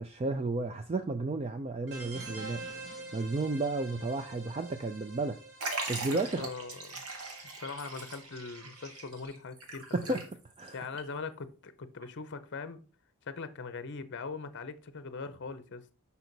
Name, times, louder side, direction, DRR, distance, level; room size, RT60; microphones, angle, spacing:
voice 1, 0.0-2.6 3.1-5.4 5.9-6.5 9.9-10.2 10.6-10.9, right 3 dB, 25° right, 0.4 m, -32 dB
sound 1, 1.9-9.2, right 2 dB, 50° right, 2.9 m, -47 dB
Liquid, 5.6-10.7 11.0-11.1 12.0-12.1, right 3 dB, 80° right, 1.8 m, -40 dB
voice 2, 6.1-7.0 7.6-10.2 10.7-12.8 13.3-15.8, left 4 dB, 55° left, 0.6 m, -41 dB
6.1 x 5.6 x 3.9 m
head